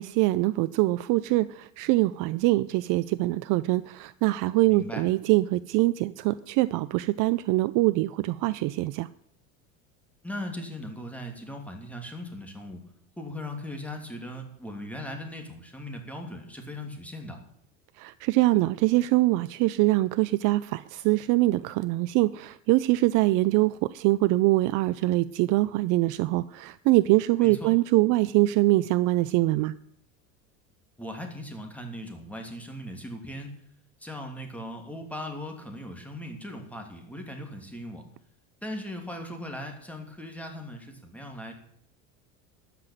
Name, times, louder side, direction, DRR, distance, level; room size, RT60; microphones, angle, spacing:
voice 1, 0.0-9.1 18.0-29.7, right 19 dB, 50° right, 15 dB, 0.5 m, -23 dB
voice 2, 4.7-5.0 10.2-12.8 13.2-17.4 27.4-27.7 31.0-33.6 34.0-38.1 38.6-41.5, left 1 dB, 5° left, 3 dB, 2.8 m, -38 dB
13.0 x 6.0 x 9.0 m, 0.71 s
supercardioid pair, 100°, 40 cm